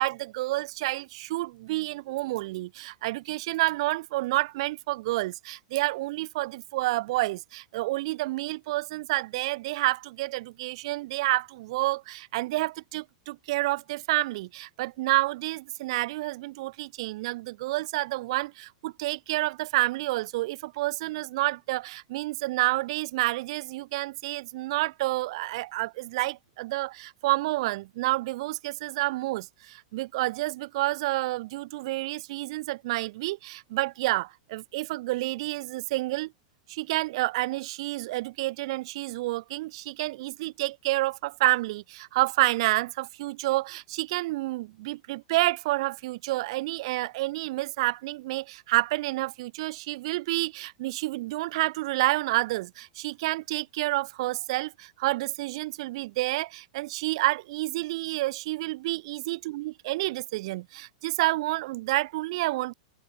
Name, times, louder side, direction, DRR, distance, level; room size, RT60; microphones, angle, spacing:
voice 1, 0.0-36.3 36.7-62.7, right 19 dB, 50° right, 2.2 m, -29 dB
open air
supercardioid pair, 170°, 4 cm